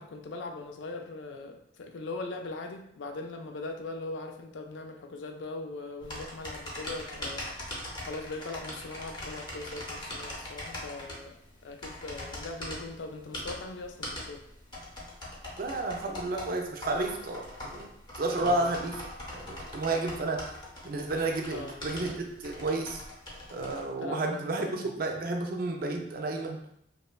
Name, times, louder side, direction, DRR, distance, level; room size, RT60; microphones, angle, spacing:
voice 1, 0.0-7.5 8.0-11.3 11.6-14.4 18.4-18.7 21.5-22.1 24.0-24.9, left 3 dB, 85° left, 4 dB, 0.4 m, -40 dB
sound 1, 6.0-23.8, left 1 dB, 25° left, 0.6 m, -41 dB
voice 2, 15.6-17.9 18.2-19.0 19.3-20.5 20.8-23.0 23.5-26.7, right 2 dB, 50° right, 3 dB, 0.4 m, -31 dB
2.9 x 2.2 x 2.2 m, 0.74 s
head